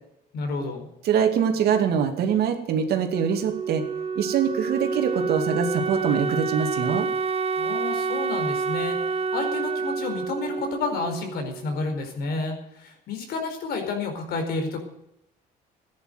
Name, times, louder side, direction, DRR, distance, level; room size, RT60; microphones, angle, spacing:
voice 1, 0.3-0.9 7.6-14.8, left 3 dB, 70° left, 5 dB, 4.6 m, -30 dB
voice 2, 1.0-3.8 4.2-7.1, right 7 dB, 70° right, 5 dB, 2.6 m, -24 dB
Wind instrument woodwind instrument, 3.1-11.8, right 5 dB, 35° right, 0.9 m, -28 dB
14.5 x 10.5 x 8.0 m, 0.83 s
cardioid pair, 110°, 17 cm